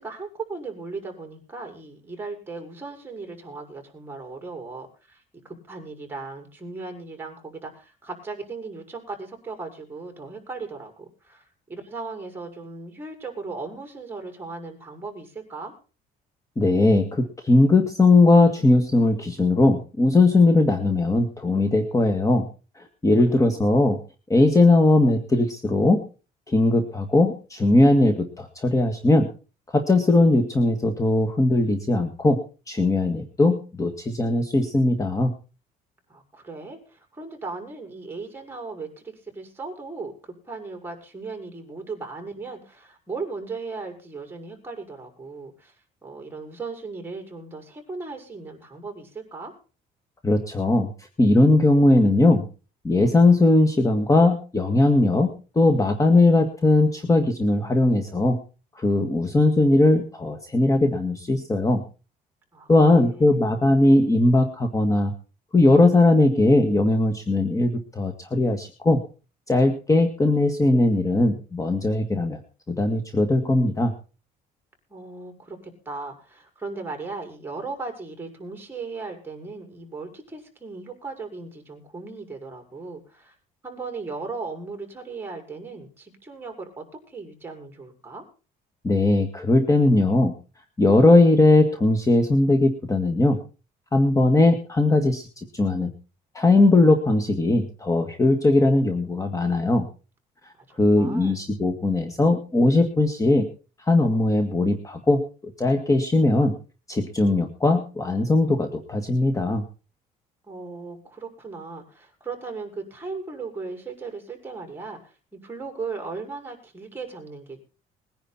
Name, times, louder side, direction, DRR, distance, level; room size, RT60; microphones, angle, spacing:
voice 1, 0.0-15.7 23.3-23.6 36.1-40.1 40.4-45.7 46.0-49.5 62.5-62.7 62.9-63.4 74.9-83.3 83.6-88.2 100.7-101.4 110.5-117.6, right 4 dB, 10° right, 3 dB, 6.1 m, -37 dB
voice 2, 16.6-22.5 22.8-24.0 24.3-26.0 26.5-29.3 29.7-32.4 32.7-35.3 50.2-50.9 51.2-52.4 52.8-58.4 58.8-61.8 62.7-65.1 65.5-69.0 69.5-72.4 72.7-73.9 88.8-90.3 90.8-93.4 93.9-95.9 96.3-99.9 100.8-103.5 103.9-106.6 106.9-109.6, left 2 dB, 20° left, 5 dB, 2.0 m, -19 dB
21.5 x 10.5 x 4.4 m, 0.36 s
cardioid pair, 110°, 17 cm